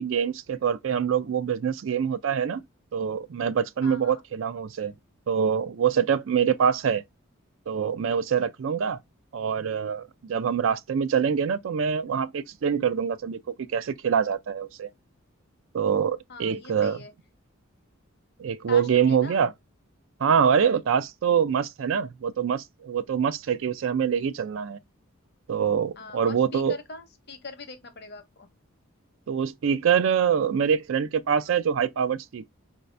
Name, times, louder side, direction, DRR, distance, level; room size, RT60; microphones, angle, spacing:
voice 1, 0.0-2.6 2.9-4.9 5.3-7.0 7.7-9.0 9.3-13.4 13.7-14.9 15.7-17.0 18.4-19.5 20.2-24.8 25.5-26.8 29.3-32.5, right 7 dB, 65° right, 0.4 m, -25 dB
voice 2, 3.8-4.2 16.3-17.1 18.7-19.4 26.0-28.5, left 4 dB, 50° left, 0.9 m, -42 dB
4.7 x 2.7 x 3.2 m
head